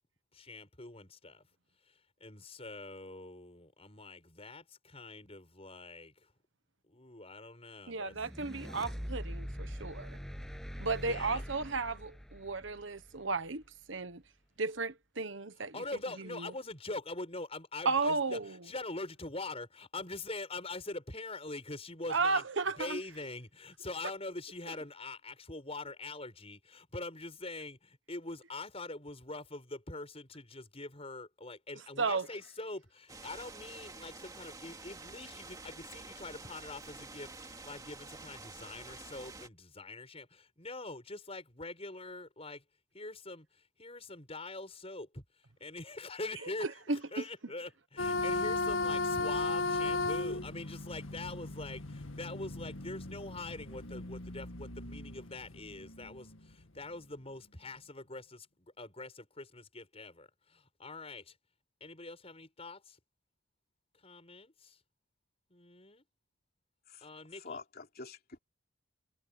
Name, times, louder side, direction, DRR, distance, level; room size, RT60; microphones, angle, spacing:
voice 1, 0.3-1.4 1.9-6.3 6.9-8.1 10.8-11.4 15.7-22.5 22.8-42.6 42.9-61.4 61.8-63.0 63.9-64.8 65.5-66.0 67.0-67.6, left 2 dB, 30° left, 7.1 m, -44 dB
voice 2, 7.9-10.2 10.8-13.6 13.9-14.2 14.6-15.7 16.2-16.5 17.8-18.6 22.1-23.0 32.0-32.3 46.4-47.2, right 3 dB, 60° right, 1.2 m, -34 dB
sound 1, 8.1-13.5, equal, ahead, 7.5 m, -43 dB
sound 2, 33.1-39.5, right 3 dB, 20° right, 2.5 m, -49 dB
sound 3, 48.0-56.8, left 3 dB, 75° left, 2.0 m, -36 dB
voice 3, 67.3-68.4, left 4 dB, 45° left, 3.4 m, -47 dB
head